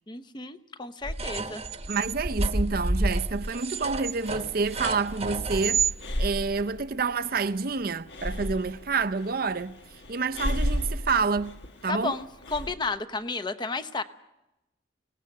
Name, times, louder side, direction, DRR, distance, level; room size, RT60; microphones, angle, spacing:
voice 1, 0.1-1.6 11.9-14.0, left 3 dB, 25° left, 0.9 m, -32 dB
sound 1, 1.0-5.9, right 3 dB, 35° right, 1.1 m, -29 dB
voice 2, 1.9-5.9 6.2-9.8 10.1-12.2, right 4 dB, 50° right, 0.6 m, -28 dB
Breathing, 4.3-12.7, equal, 65° left, 1.5 m, -35 dB
24.0 x 18.0 x 6.6 m
head